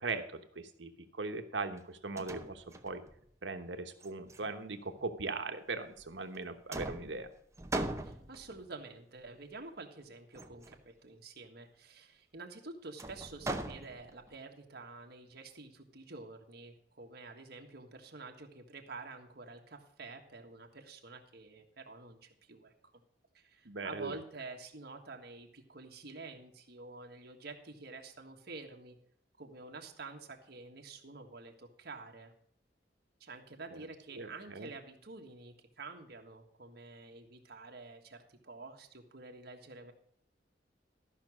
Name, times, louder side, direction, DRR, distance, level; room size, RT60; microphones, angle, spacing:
voice 1, 0.0-3.0 3.4-7.3 23.6-24.2 33.7-33.8 34.1-34.7, right 3 dB, 85° right, 7 dB, 1.2 m, -39 dB
sound 1, 1.8-1.9 2.2-3.2 4.0-5.0 6.0-6.4 6.7-8.6 10.3-10.8 13.0-14.3, right 2 dB, 15° right, 0.8 m, -40 dB
voice 2, 8.0-22.7 23.3-29.0 29.4-32.3 33.2-39.9, right 3 dB, 60° right, 3 dB, 1.6 m, -49 dB
13.0 x 6.0 x 6.2 m, 0.67 s
head